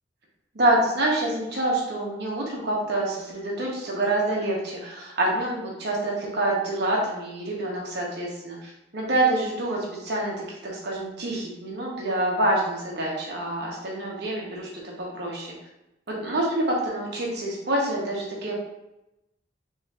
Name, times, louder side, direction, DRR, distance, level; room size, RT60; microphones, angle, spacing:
voice 1, 0.5-10.3 10.6-14.7 15.0-15.5 16.1-18.6, right 1 dB, 65° right, -3 dB, 1.0 m, -26 dB
4.1 x 3.1 x 2.5 m, 0.90 s
head